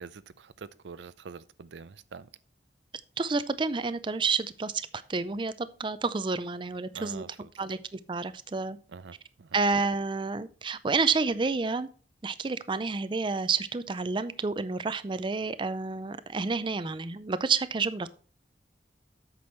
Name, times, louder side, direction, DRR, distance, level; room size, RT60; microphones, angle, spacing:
voice 1, 0.0-2.3 6.9-7.5 8.9-9.6, right 5 dB, 90° right, 0.5 m, -45 dB
voice 2, 3.2-7.2 7.6-8.8 9.5-11.9 12.2-18.2, right 4 dB, 30° right, 0.4 m, -29 dB
8.4 x 6.2 x 4.4 m
head